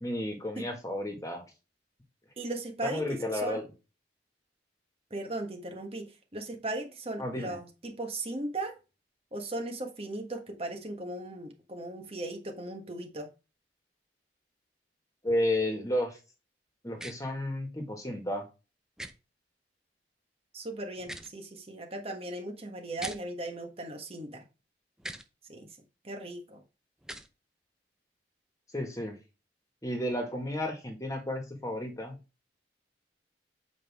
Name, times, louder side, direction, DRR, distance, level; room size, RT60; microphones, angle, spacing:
voice 1, 0.0-1.4 2.8-3.6 7.2-7.6 15.2-16.2 16.8-18.5 28.7-29.2 29.8-32.2, left 1 dB, 20° left, 1.8 m, -32 dB
voice 2, 2.4-3.6 5.1-8.7 9.3-13.3 20.5-24.4 25.5-25.8 26.0-26.6, right 2 dB, 35° right, 1.3 m, -37 dB
sound 1, 17.0-17.1 19.0-19.1 21.0-21.3 23.0-23.2 25.0-25.3 27.0-27.3, right 1 dB, 5° right, 0.6 m, -40 dB
8.1 x 5.2 x 3.5 m
head